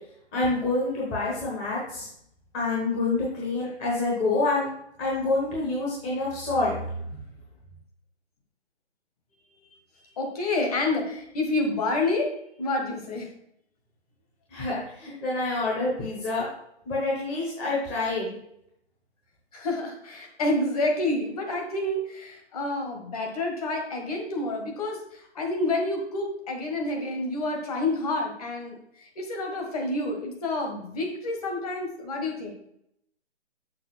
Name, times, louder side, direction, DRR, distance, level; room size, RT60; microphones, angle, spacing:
voice 1, 0.3-2.1 2.5-4.7 5.0-6.8 14.5-16.5 16.9-18.3, left 2 dB, 15° left, -6 dB, 1.1 m, -27 dB
voice 2, 10.2-12.3 12.6-13.3 19.5-32.5, left 2 dB, 35° left, 1 dB, 1.7 m, -28 dB
6.6 x 5.8 x 4.4 m, 0.73 s
figure-of-eight pair, 150°, 33 cm